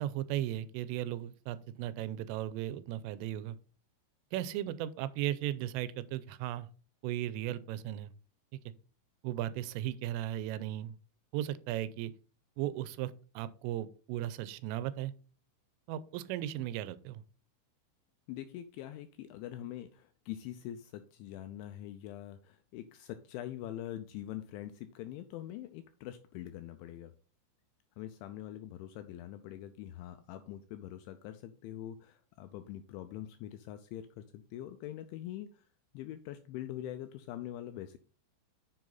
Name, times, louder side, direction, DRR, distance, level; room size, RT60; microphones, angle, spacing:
voice 1, 0.0-3.6 4.3-6.7 7.0-8.1 9.2-11.0 11.3-12.1 12.6-15.1 15.9-17.2, right 12 dB, 85° right, 3.1 m, -36 dB
voice 2, 18.3-27.1 28.0-35.6 35.9-38.0, left 12 dB, 85° left, 2.8 m, -44 dB
7.6 x 7.1 x 4.0 m
omnidirectional pair, 5.8 m